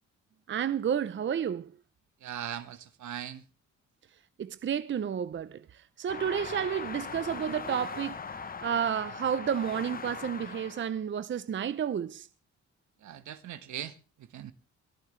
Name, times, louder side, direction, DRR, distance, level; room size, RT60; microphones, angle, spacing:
voice 1, 0.5-1.7 4.4-12.3, right 8 dB, 40° right, 0.7 m, -31 dB
voice 2, 2.2-3.4 13.0-14.5, right 10 dB, 70° right, 1.4 m, -40 dB
sound 1, 6.1-11.0, left 5 dB, 30° left, 1.0 m, -40 dB
23.0 x 14.0 x 3.3 m
cardioid pair, 90°, 30 cm